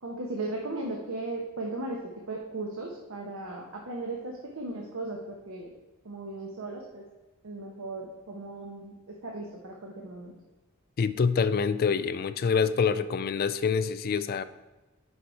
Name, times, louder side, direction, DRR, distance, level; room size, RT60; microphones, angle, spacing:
voice 1, 0.0-2.0 2.3-5.7 6.0-7.0 7.4-10.3, right 2 dB, 75° right, -1 dB, 0.9 m, -37 dB
voice 2, 11.0-14.4, left 5 dB, 45° left, 13 dB, 0.3 m, -26 dB
6.5 x 5.3 x 4.5 m, 1.1 s
head